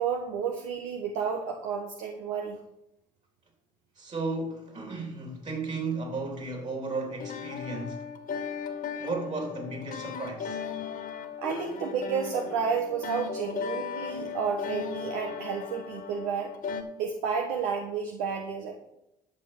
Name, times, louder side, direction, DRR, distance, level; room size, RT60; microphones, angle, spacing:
voice 1, 0.0-2.6 11.4-16.5 17.0-18.8, right 6 dB, 85° right, 1.1 m, -31 dB
voice 2, 4.0-8.1 9.0-10.6, right 3 dB, 45° right, 3.5 m, -34 dB
sound 1, 7.2-16.8, left 7 dB, 60° left, 2.0 m, -37 dB
11.5 x 6.7 x 5.9 m
supercardioid pair, 60°, 17 cm